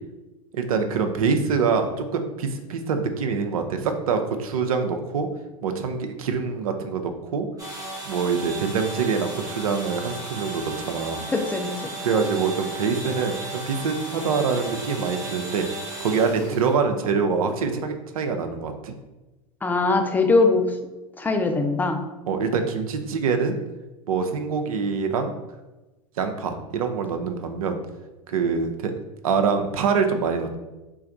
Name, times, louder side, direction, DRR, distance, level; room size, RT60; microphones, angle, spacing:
voice 1, 0.5-5.3 5.6-7.5 8.0-11.2 12.0-15.7 16.0-18.9 22.3-23.6 24.1-25.3 26.2-27.8 28.3-28.9 29.2-30.6, right 5 dB, 75° right, 6 dB, 0.5 m, -25 dB
sound 1, 7.6-16.7, right 2 dB, 20° right, 1.1 m, -35 dB
voice 2, 11.3-12.0 19.6-20.8 21.2-22.0, left 3 dB, 10° left, 5 dB, 0.4 m, -21 dB
3.3 x 2.4 x 3.9 m, 1.1 s
hypercardioid pair, 100°, 18 cm